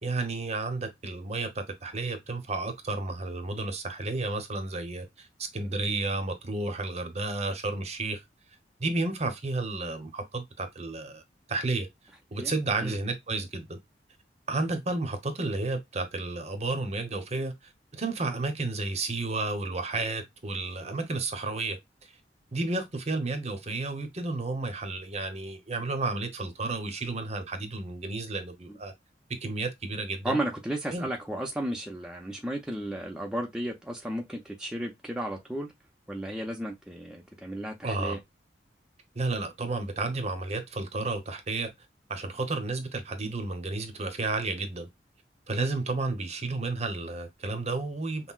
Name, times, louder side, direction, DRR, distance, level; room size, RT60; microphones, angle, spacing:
voice 1, 0.0-8.2 8.8-11.2 11.5-11.9 12.3-13.8 14.5-17.5 17.9-21.8 22.5-28.9 29.4-30.4 30.9-31.1 37.8-38.2 39.2-41.7 42.1-44.9 45.5-48.3, right 3 dB, 35° right, 0.8 m, -32 dB
voice 2, 30.2-35.7 36.1-38.2, right 1 dB, 5° right, 0.5 m, -34 dB
5.6 x 2.1 x 2.3 m
head